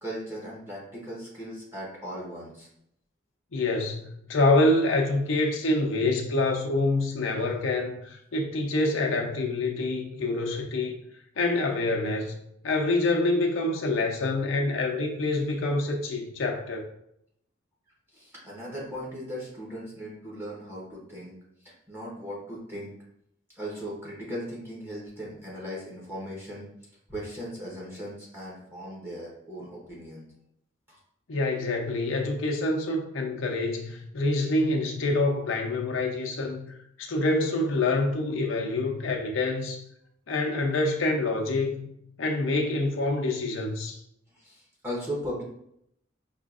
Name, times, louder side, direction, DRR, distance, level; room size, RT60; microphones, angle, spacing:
voice 1, 0.0-2.7 18.1-21.4 21.6-22.9 23.5-26.7 27.1-30.2 30.9-31.0 44.3-45.4, equal, 10° right, -6 dB, 1.0 m, -38 dB
voice 2, 3.5-11.0 11.4-12.3 12.6-16.8 31.3-36.7 37.0-39.8 40.3-41.9 42.2-44.0, left 2 dB, 80° left, 1 dB, 0.6 m, -26 dB
5.4 x 2.5 x 2.4 m, 0.74 s
head